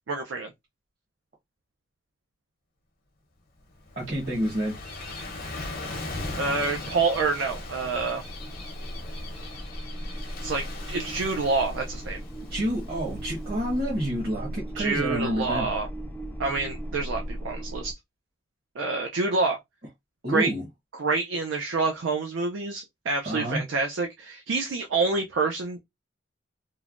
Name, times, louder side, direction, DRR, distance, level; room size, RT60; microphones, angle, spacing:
voice 1, 0.1-0.5 6.4-8.2 10.4-12.2 14.8-15.9 16.4-18.0 18.8-19.6 20.3-20.5 20.9-25.8, right 3 dB, 80° right, 0.4 m, -27 dB
Gull seagull / Waves surf, 3.6-14.2, left 2 dB, 50° left, 0.8 m, -39 dB
voice 2, 4.0-4.8 12.5-15.7 20.2-20.6 23.2-23.6, equal, 50° right, 1.0 m, -29 dB
sound 1, 6.4-17.9, equal, 10° left, 0.4 m, -38 dB
3.1 x 2.1 x 2.4 m
head